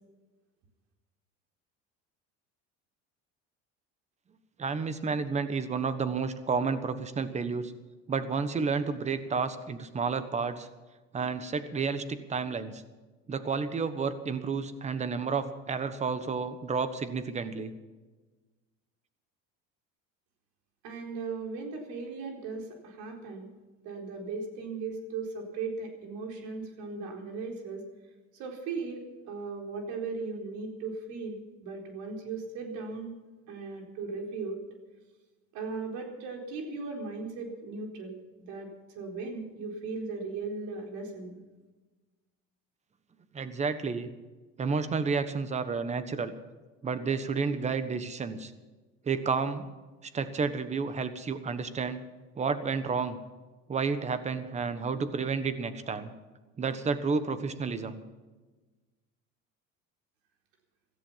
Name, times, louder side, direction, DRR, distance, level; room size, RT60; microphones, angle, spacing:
voice 1, 4.6-7.7 8.1-10.7 11.1-12.8 13.3-17.7 43.3-44.1 44.6-46.3 46.8-48.5 49.0-49.6 50.1-52.0 52.4-53.2 53.7-56.1 56.6-58.0, right 5 dB, 25° right, 11 dB, 1.3 m, -31 dB
voice 2, 20.8-23.5 23.8-27.8 28.3-33.1 33.5-34.6 35.5-41.4, right 4 dB, 70° right, 1 dB, 4.3 m, -37 dB
16.5 x 14.5 x 5.7 m, 1.3 s
cardioid pair, 140°, 30 cm